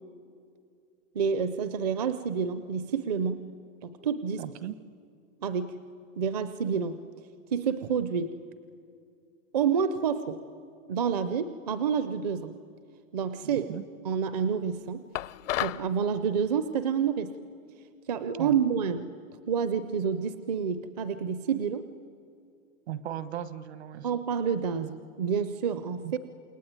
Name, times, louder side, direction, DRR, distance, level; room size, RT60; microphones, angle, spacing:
voice 1, 1.1-3.5 3.8-4.5 5.4-5.8 6.2-7.0 7.5-8.4 9.5-10.4 10.9-12.5 13.1-13.7 14.0-15.0 15.6-17.3 18.1-19.1 19.5-21.9 24.0-26.2, right 6 dB, 30° right, 12 dB, 0.6 m, -28 dB
voice 2, 4.4-4.8 13.4-13.8 18.4-18.6 22.9-24.1 26.0-26.1, right 11 dB, 55° right, 14 dB, 1.2 m, -37 dB
sound 1, 15.1-15.9, left 14 dB, 70° left, 0.6 m, -31 dB
28.5 x 21.0 x 9.4 m, 2.4 s
supercardioid pair, 180°, 40 cm